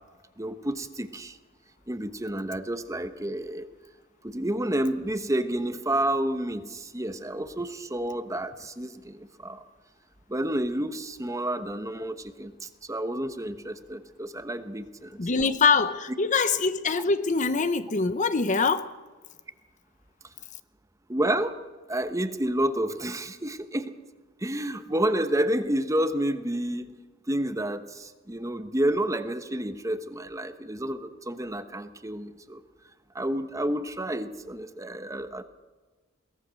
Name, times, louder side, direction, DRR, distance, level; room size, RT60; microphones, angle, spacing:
voice 1, 0.4-1.4 1.9-3.7 4.2-9.6 10.3-15.5 21.1-21.6 21.9-23.9 24.4-26.9 27.3-32.6 33.1-35.4, right 1 dB, 15° right, 1.0 m, -30 dB
voice 2, 15.2-18.9, left 4 dB, 40° left, 0.8 m, -24 dB
22.5 x 18.5 x 6.4 m
head